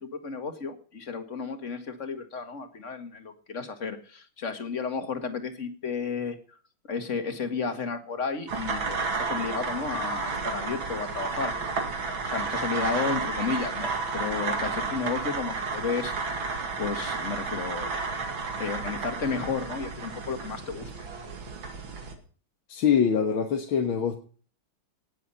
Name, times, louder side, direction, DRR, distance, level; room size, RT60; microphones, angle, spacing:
voice 1, 0.0-6.4 6.9-11.5 12.2-16.1 16.8-17.9 18.6-20.9, left 5 dB, 40° left, 2.2 m, -32 dB
sound 1, 8.5-22.2, right 4 dB, 80° right, 3.0 m, -32 dB
voice 2, 22.7-24.2, left 7 dB, 90° left, 2.2 m, -24 dB
19.0 x 7.7 x 5.6 m
omnidirectional pair, 2.2 m